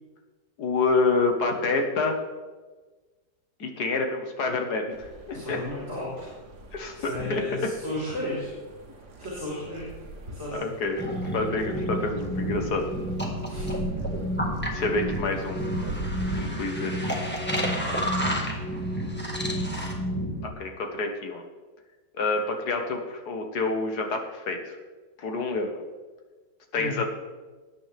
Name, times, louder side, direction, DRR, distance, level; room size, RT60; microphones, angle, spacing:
voice 1, 0.6-2.2 3.6-5.6 6.7-7.4 10.5-11.0 11.3-12.8 14.7-17.0 20.6-21.4 22.1-24.8 25.2-25.8 26.7-27.1, left 3 dB, 60° left, 4 dB, 1.9 m, -28 dB
sound 1, 4.9-16.5, right 2 dB, 65° right, 1.8 m, -42 dB
voice 2, 5.3-6.4 6.9-8.5 8.8-9.9 10.3-10.7 13.5-13.8 26.7-27.0, left 1 dB, 45° right, -8 dB, 5.0 m, -34 dB
sound 2, 11.0-20.5, equal, 5° left, 1.4 m, -30 dB
19.0 x 9.0 x 3.5 m, 1.3 s
omnidirectional pair, 1.9 m